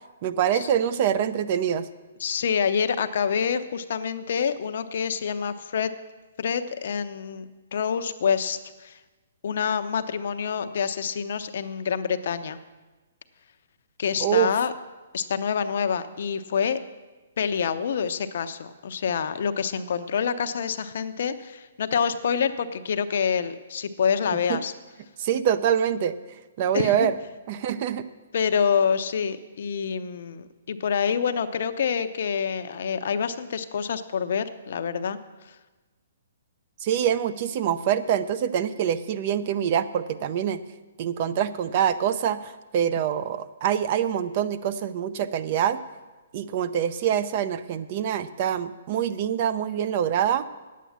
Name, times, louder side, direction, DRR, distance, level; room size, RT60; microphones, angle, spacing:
voice 1, 0.2-1.9 14.2-14.5 24.5-24.6 25.2-26.2 26.6-27.2 27.5-28.1 36.8-40.6 41.0-45.8 46.3-50.4, right 9 dB, 40° right, 13 dB, 0.5 m, -25 dB
voice 2, 2.2-5.9 6.4-9.0 9.4-12.6 14.0-14.7 15.1-16.8 17.4-24.7 26.7-27.1 28.3-35.2, left 7 dB, 60° left, 10 dB, 0.7 m, -27 dB
9.2 x 8.4 x 7.2 m, 1.2 s
hypercardioid pair, 155°, 0 cm